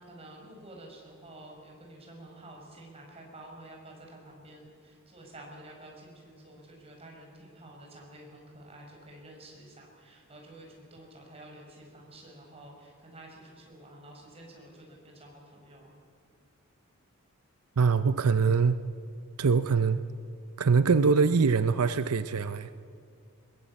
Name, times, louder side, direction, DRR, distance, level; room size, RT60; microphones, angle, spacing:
voice 1, 0.1-15.9, right 1 dB, 25° right, 0 dB, 5.2 m, -50 dB
voice 2, 17.8-18.8 19.4-20.0 20.6-22.7, right 5 dB, 80° right, 12 dB, 0.6 m, -23 dB
22.0 x 20.5 x 8.4 m, 2.3 s
head